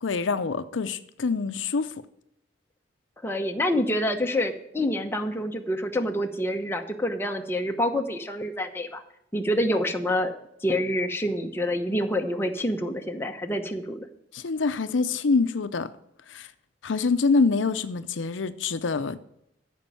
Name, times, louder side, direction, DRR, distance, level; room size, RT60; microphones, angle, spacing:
voice 1, 0.0-1.9 14.3-15.9 16.3-16.5 16.8-19.2, left 4 dB, 75° left, 0.6 m, -25 dB
voice 2, 3.2-9.0 9.3-10.3 10.6-14.0, left 1 dB, 10° left, 0.9 m, -27 dB
14.5 x 5.4 x 7.0 m
head